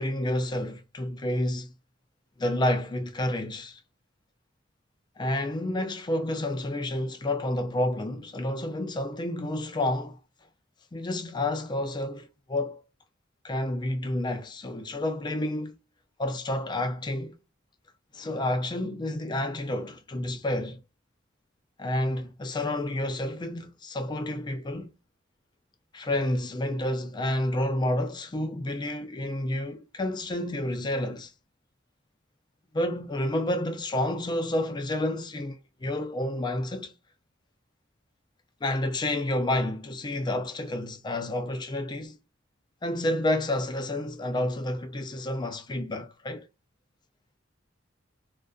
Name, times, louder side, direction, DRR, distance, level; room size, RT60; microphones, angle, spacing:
voice 1, 0.0-1.7 2.4-3.8 5.2-10.2 10.9-12.8 13.4-15.8 16.2-17.4 18.1-20.8 21.8-24.9 25.9-31.3 32.7-36.9 38.6-42.2 42.8-46.5, left 1 dB, 20° left, 0.4 m, -29 dB
2.5 x 2.4 x 2.2 m
head